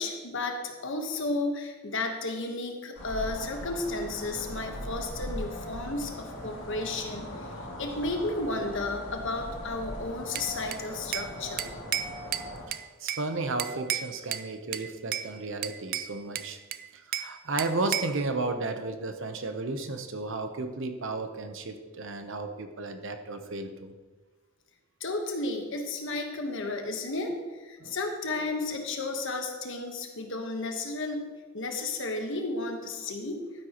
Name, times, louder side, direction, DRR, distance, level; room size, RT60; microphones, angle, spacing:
voice 1, 0.0-11.7 25.0-33.5, left 2 dB, 65° left, 4 dB, 1.3 m, -33 dB
sound 1, 3.0-12.7, equal, 85° left, 2.4 m, -39 dB
Bell / Glass, 10.4-11.3 11.6-13.3 13.6-14.5 14.7-15.3 15.6-17.3 17.6-18.2, right 11 dB, 45° right, 0.4 m, -33 dB
voice 2, 12.7-16.6 16.9-23.9 27.8-28.0, right 3 dB, 65° right, 7 dB, 0.9 m, -33 dB
12.0 x 9.9 x 3.0 m, 1.3 s
head